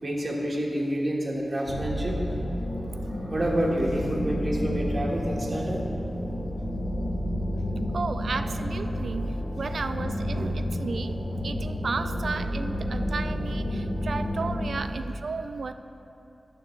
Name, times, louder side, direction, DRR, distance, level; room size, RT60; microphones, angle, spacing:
voice 1, 0.0-2.2 3.3-5.8, right 1 dB, 35° right, -3 dB, 1.6 m, -28 dB
sound 1, 1.7-14.8, equal, 60° left, 1.1 m, -30 dB
voice 2, 7.9-15.7, right 4 dB, 75° right, 9 dB, 0.3 m, -34 dB
11.5 x 7.5 x 3.2 m, 2.9 s
wide cardioid pair, 80°, 0 cm